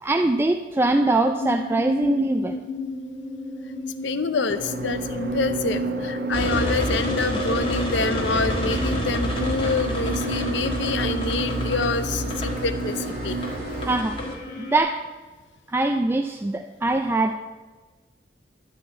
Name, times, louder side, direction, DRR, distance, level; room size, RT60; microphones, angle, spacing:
voice 1, 0.0-2.6 13.8-14.2 14.6-15.0 15.7-17.4, right 2 dB, 15° right, 6 dB, 0.3 m, -22 dB
sound 1, 1.4-14.8, left 2 dB, 55° left, 2.1 m, -35 dB
voice 2, 4.0-13.4, left 3 dB, 75° left, 12 dB, 0.6 m, -27 dB
sound 2, 4.5-14.0, right 3 dB, 55° right, 0.8 m, -30 dB
sound 3, 6.3-14.3, left 1 dB, 30° left, 1.6 m, -29 dB
12.5 x 4.3 x 8.3 m, 1.4 s
head